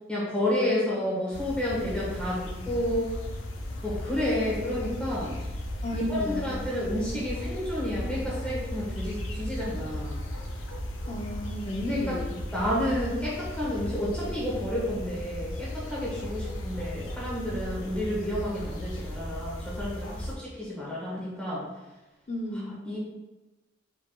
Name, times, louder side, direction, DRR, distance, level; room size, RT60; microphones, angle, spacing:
voice 1, 0.1-3.1 3.8-5.3 5.9-10.2 11.9-12.2 12.5-21.6 22.8-23.0, left 1 dB, 5° left, -7 dB, 1.4 m, -30 dB
sound 1, 1.3-20.3, left 1 dB, 80° left, 0.6 m, -36 dB
voice 2, 5.8-6.6 11.1-12.4 22.3-22.8, equal, 35° left, 3 dB, 0.5 m, -34 dB
4.7 x 4.4 x 2.4 m, 1.1 s
head